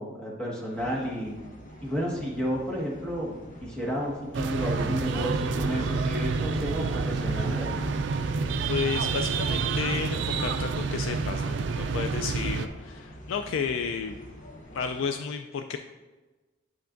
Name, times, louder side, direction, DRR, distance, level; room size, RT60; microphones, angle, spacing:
voice 1, 0.0-1.3 1.8-7.8, equal, 5° left, -6 dB, 1.5 m, -32 dB
sound 1, 0.7-15.1, equal, 40° left, 0.8 m, -46 dB
sound 2, 4.3-12.7, right 4 dB, 60° right, 0.4 m, -28 dB
voice 2, 8.7-14.2 14.7-15.8, left 6 dB, 75° left, 6 dB, 0.3 m, -32 dB
9.2 x 5.7 x 2.5 m, 1.2 s
head